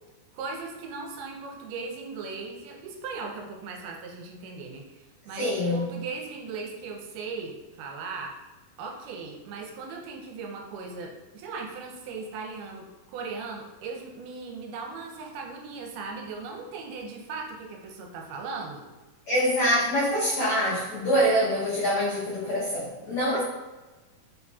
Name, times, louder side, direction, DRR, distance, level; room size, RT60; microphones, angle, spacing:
voice 1, 0.3-8.4 8.8-18.8, right 4 dB, 80° right, 1 dB, 2.5 m, -38 dB
voice 2, 5.3-5.8 19.3-23.4, equal, 85° left, -8 dB, 1.6 m, -25 dB
5.7 x 4.0 x 2.3 m, 1.2 s
omnidirectional pair, 4.6 m